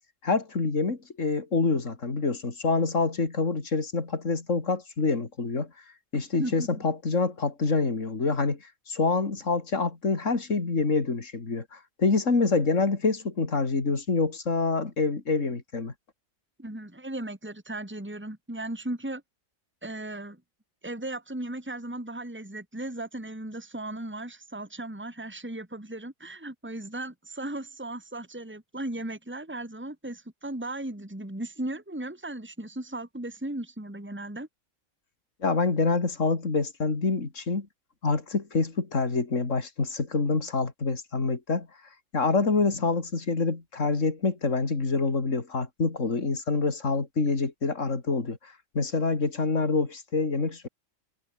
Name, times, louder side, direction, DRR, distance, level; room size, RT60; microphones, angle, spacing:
voice 1, 0.2-5.7 6.1-8.6 8.9-15.9 35.4-37.7 38.0-41.7 42.1-50.7, left 4 dB, 65° left, 3.3 m, -26 dB
voice 2, 6.4-6.8 16.6-19.2 19.8-20.4 20.8-34.5, right 1 dB, 10° right, 2.6 m, -36 dB
omnidirectional pair, 1.4 m